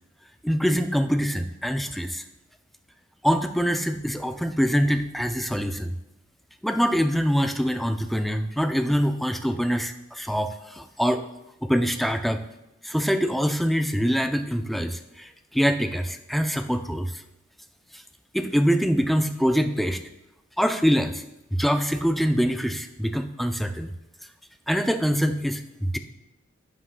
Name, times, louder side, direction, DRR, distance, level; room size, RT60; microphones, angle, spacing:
voice 1, 0.4-2.2 3.2-5.9 6.6-11.2 11.6-12.4 12.8-17.2 18.3-20.0 20.6-21.2 21.5-23.9 24.7-26.0, equal, ahead, 7 dB, 0.4 m, -24 dB
11.0 x 7.4 x 2.2 m, 0.90 s
head